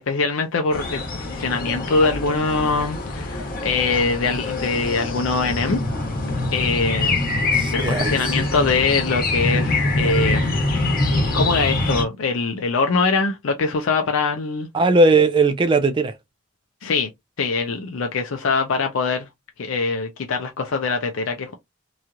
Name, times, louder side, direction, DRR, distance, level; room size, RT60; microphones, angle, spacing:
voice 1, 0.1-5.8 6.5-7.2 7.7-10.5 11.3-14.7 16.8-17.1 17.4-19.3 19.6-21.5, left 4 dB, 80° left, 0.5 m, -23 dB
sound 1, 0.7-12.0, left 2 dB, 50° left, 1.3 m, -24 dB
voice 2, 7.5-8.5 14.7-16.1, right 3 dB, 25° right, 0.3 m, -18 dB
3.0 x 2.3 x 2.6 m
head